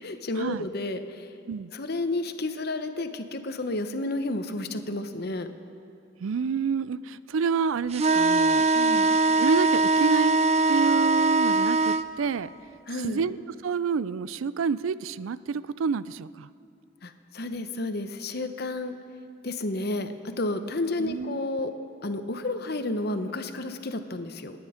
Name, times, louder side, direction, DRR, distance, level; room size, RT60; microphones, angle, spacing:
voice 1, 0.0-1.3 1.7-5.5 8.7-9.1 12.9-13.2 17.0-19.0 19.4-21.7 22.0-24.5, left 2 dB, 50° left, 8 dB, 0.9 m, -31 dB
voice 2, 6.2-8.7 9.4-10.4 10.7-12.5 13.0-13.4 13.6-16.5 21.0-21.6, right 6 dB, 90° right, 17 dB, 0.4 m, -28 dB
sound 1, 7.9-12.0, right 3 dB, 30° right, 0.4 m, -21 dB
28.5 x 9.9 x 5.0 m, 2.6 s
head